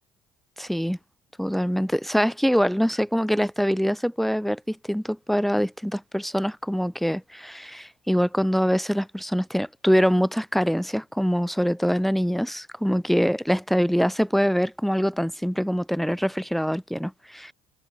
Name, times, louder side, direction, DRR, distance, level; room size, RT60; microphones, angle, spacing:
voice 1, 0.6-1.0 1.4-17.5, equal, ahead, 1.5 m, -24 dB
figure-of-eight pair, 50°, 17 cm